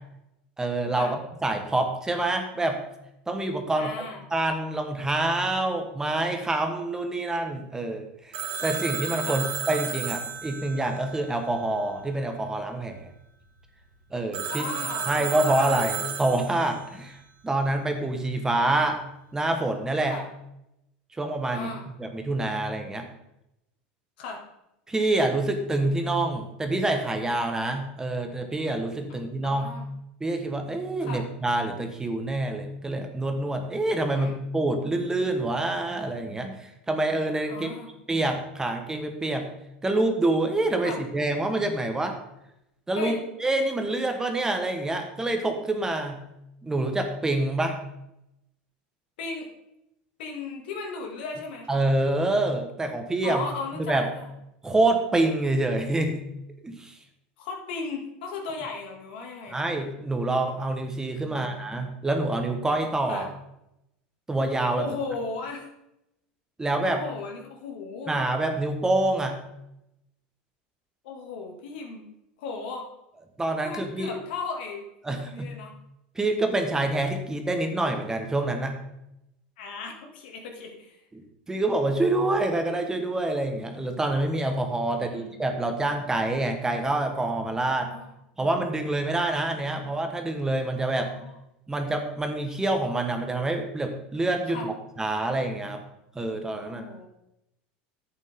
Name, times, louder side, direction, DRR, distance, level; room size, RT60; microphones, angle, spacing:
voice 1, 0.6-2.8 3.3-3.9 4.3-13.1 14.1-14.7 15.1-17.2 17.4-19.0 19.3-20.2 21.2-21.7 22.0-23.1 24.9-29.7 30.2-37.7 38.1-39.5 39.8-42.2 42.9-46.2 46.6-47.8 51.7-53.5 53.8-54.1 54.6-56.2 56.6-56.9 59.5-63.3 64.3-64.8 66.6-67.0 68.1-69.4 73.4-74.2 75.0-75.5 76.1-78.8 81.5-87.9 88.4-91.1 91.7-95.8 96.1-96.8, right 2 dB, 10° right, 5 dB, 1.3 m, -26 dB
voice 2, 3.7-4.3 9.3-9.5 14.4-15.9 20.1-20.3 21.5-21.9 24.2-24.4 29.4-29.9 31.0-31.2 34.1-34.4 37.5-37.9 40.8-41.0 43.0-43.2 49.2-49.5 50.2-51.8 53.2-54.3 57.4-59.6 61.2-61.7 63.1-63.3 64.8-65.7 66.8-68.1 71.0-72.1 72.4-72.9 73.6-74.8 75.2-75.7 79.6-81.0 84.8-85.3 87.8-88.1 89.2-89.9 91.0-91.4 94.5-94.7 96.6-97.1, left 4 dB, 80° left, 2 dB, 2.3 m, -36 dB
Telephone, 8.3-12.0 14.3-16.9, right 6 dB, 80° right, 2.0 m, -33 dB
10.5 x 8.4 x 3.7 m, 0.84 s
supercardioid pair, 120°, 5 cm